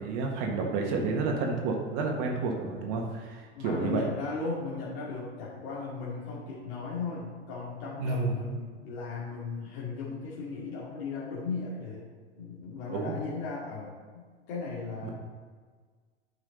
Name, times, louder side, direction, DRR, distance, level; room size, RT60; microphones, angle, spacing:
voice 1, 0.0-4.0 8.0-8.3 12.9-13.2 15.0-15.1, right 4 dB, 45° right, 1 dB, 1.7 m, -30 dB
voice 2, 3.5-12.0 12.4-15.1, left 4 dB, 55° left, -7 dB, 2.5 m, -37 dB
9.2 x 6.1 x 4.1 m, 1.5 s
hypercardioid pair, 90°, 35 cm